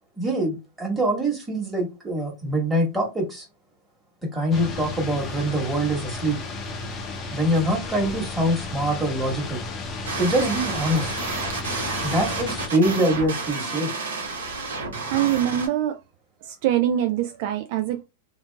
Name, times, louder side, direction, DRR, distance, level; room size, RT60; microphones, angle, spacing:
voice 1, 0.2-3.4 4.3-6.4 7.3-9.6 10.2-11.1 12.0-13.9, right 1 dB, 10° right, 1.6 m, -24 dB
sound 1, 4.5-12.7, left 3 dB, 30° left, 0.6 m, -33 dB
sound 2, 10.0-15.7, right 3 dB, 75° right, 1.1 m, -30 dB
voice 2, 15.1-16.0 16.4-18.0, right 11 dB, 55° right, 0.3 m, -24 dB
2.8 x 2.5 x 2.2 m
hypercardioid pair, 100°, 0 cm